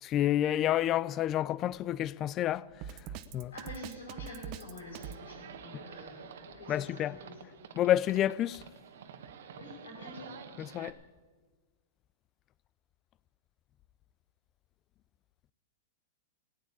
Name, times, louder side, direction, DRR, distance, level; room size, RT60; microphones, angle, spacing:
voice 1, 0.0-2.7 3.3-3.5 5.7-5.8 6.7-7.2 7.8-8.7 10.6-11.0, left 12 dB, 30° left, 0.4 m, -29 dB
Drum kit, 2.8-5.2, right 9 dB, 45° right, 0.8 m, -42 dB
voice 2, 3.5-7.5 9.6-10.3, left 2 dB, 85° left, 5.6 m, -47 dB
Livestock farm animals working animals, 4.9-10.9, right 7 dB, 70° right, 1.3 m, -49 dB
16.5 x 9.3 x 8.6 m
hypercardioid pair, 125°, 0 cm